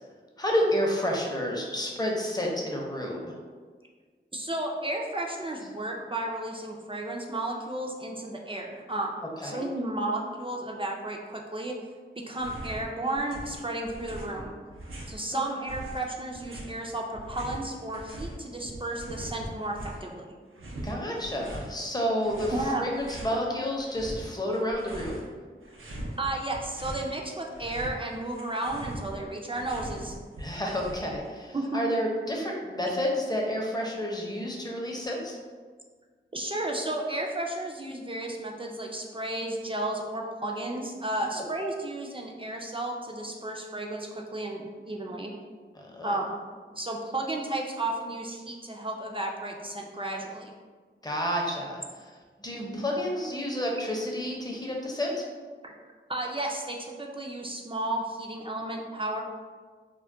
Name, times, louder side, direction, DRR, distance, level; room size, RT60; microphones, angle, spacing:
voice 1, 0.4-3.4 9.4-9.6 15.3-15.4 20.8-25.2 30.4-35.4 41.4-41.5 45.7-46.2 51.0-55.3, equal, 20° left, -1 dB, 0.6 m, -30 dB
voice 2, 4.3-11.7 12.3-14.5 15.1-20.3 22.5-22.9 26.2-30.1 31.5-31.8 36.3-45.3 46.0-46.3 46.7-50.5 52.5-52.8 55.6-55.7 56.1-59.2, right 1 dB, 25° right, -1 dB, 0.3 m, -33 dB
sound 1, 12.3-12.9 13.1-15.2 15.6-18.3 18.6-20.1 20.5-21.7 22.2-23.4 23.8-25.3 25.6-27.1 27.4-31.3, right 1 dB, 90° right, 0.5 m, -41 dB
2.2 x 2.1 x 3.6 m, 1.5 s
wide cardioid pair, 45°, 21 cm